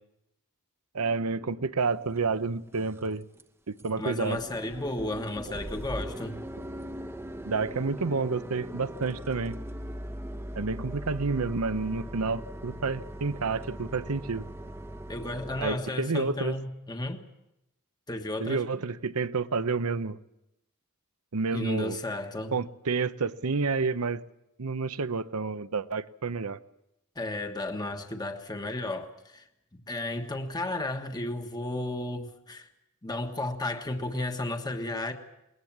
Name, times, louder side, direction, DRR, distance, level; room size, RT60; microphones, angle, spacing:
voice 1, 0.9-3.2 3.7-4.4 7.4-9.6 10.6-14.5 15.6-16.5 18.4-20.2 21.3-22.0 22.5-24.2 24.6-26.6, right 4 dB, 75° right, 0.8 m, -29 dB
sound 1, 2.1-2.2 2.7-3.1 3.4-3.5 3.8-3.9 4.2-15.7, equal, 10° right, 0.9 m, -40 dB
voice 2, 4.0-6.4 15.1-17.2 18.1-18.6 21.5-22.6 27.1-29.4 29.7-32.7 33.0-35.1, left 1 dB, 20° left, 1.4 m, -33 dB
21.0 x 19.5 x 7.3 m
head